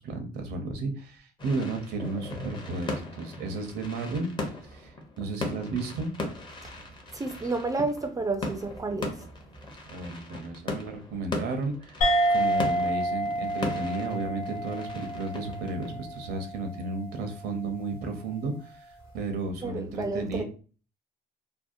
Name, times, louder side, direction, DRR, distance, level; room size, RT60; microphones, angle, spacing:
voice 1, 0.0-4.3 4.6-6.1 9.9-12.0 12.3-20.4, right 3 dB, 75° right, 0.6 m, -33 dB
sound 1, 1.4-16.7, left 2 dB, 30° left, 0.6 m, -38 dB
voice 2, 7.1-9.1 19.6-20.4, right 3 dB, 20° right, 0.3 m, -30 dB
sound 2, 12.0-16.9, right 1 dB, 60° left, 1.0 m, -29 dB
2.7 x 2.0 x 2.4 m
cardioid pair, 110°, 17 cm